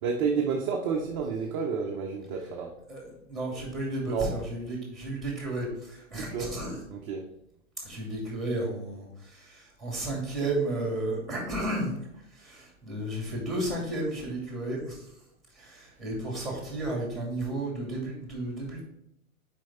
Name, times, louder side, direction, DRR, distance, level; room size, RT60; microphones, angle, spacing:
voice 1, 0.0-2.8 4.0-4.3 6.1-6.6 6.9-7.3, right 5 dB, 25° right, 1 dB, 0.5 m, -30 dB
voice 2, 3.3-6.8 7.8-11.9 12.3-15.1 15.5-18.8, right 1 dB, ahead, -1 dB, 2.3 m, -33 dB
6.1 x 5.0 x 4.2 m, 0.78 s
hypercardioid pair, 125°, 42 cm